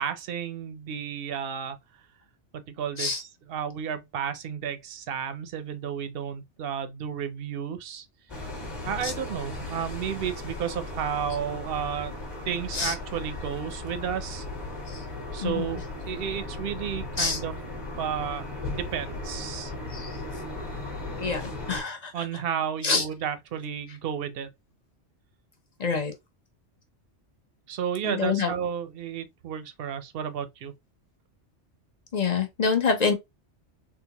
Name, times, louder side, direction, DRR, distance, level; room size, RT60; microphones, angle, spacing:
voice 1, 0.0-1.8 2.5-8.1 8.8-12.1 12.5-14.4 15.3-17.6 18.0-19.7 22.1-24.5 27.7-30.7, right 8 dB, 60° right, 0.7 m, -32 dB
sound 1, 8.3-21.8, left 2 dB, 25° left, 1.1 m, -36 dB
voice 2, 15.4-15.8 17.2-17.4 19.9-20.1 21.2-21.4 21.7-22.1 22.8-23.0 25.8-26.1 28.0-28.5 32.1-33.1, left 5 dB, 40° left, 0.7 m, -26 dB
3.8 x 2.3 x 2.8 m
omnidirectional pair, 1.2 m